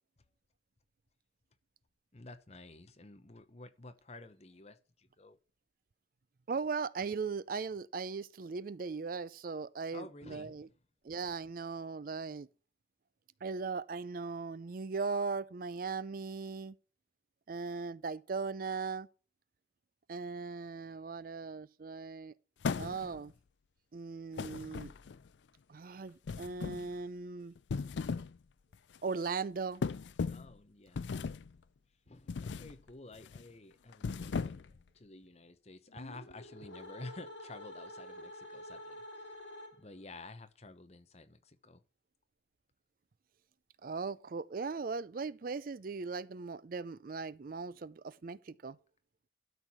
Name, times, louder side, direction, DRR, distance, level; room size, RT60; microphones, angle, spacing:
voice 1, 2.1-5.4 9.9-10.6 30.3-31.0 32.1-39.4 39.8-41.8, left 2 dB, 35° left, 0.9 m, -51 dB
voice 2, 6.5-10.7 11.0-12.5 13.4-16.8 17.5-19.1 20.1-22.3 22.8-23.3 23.9-24.9 25.7-27.5 29.0-29.8 43.8-48.8, right 4 dB, 45° right, 0.4 m, -38 dB
sound 1, 22.6-23.3 24.4-25.3 26.3-26.9 27.6-28.4 28.7-29.0 29.8-30.5 31.0-31.5 32.3-32.7 33.1-33.4 33.9-34.8, left 5 dB, 70° left, 0.4 m, -37 dB
sound 2, 35.9-40.1, left 1 dB, 85° left, 2.2 m, -48 dB
12.5 x 4.7 x 5.5 m
head